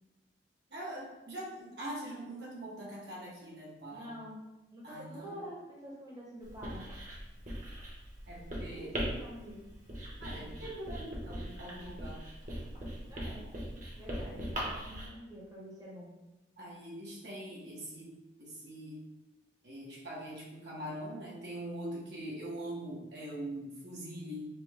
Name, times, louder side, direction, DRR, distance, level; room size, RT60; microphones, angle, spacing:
voice 1, 0.7-4.1 4.8-5.4 8.3-8.9 10.2-12.2 16.6-18.1 18.4-19.0 19.6-24.5, right 1 dB, 65° right, -5 dB, 1.2 m, -43 dB
voice 2, 3.9-4.4 4.7-6.8 8.6-9.6 13.1-13.5 13.9-16.1, equal, 20° right, -6 dB, 1.0 m, -47 dB
Writing, 6.4-15.1, equal, 45° right, 1.2 m, -40 dB
5.8 x 2.2 x 3.5 m, 1.0 s
head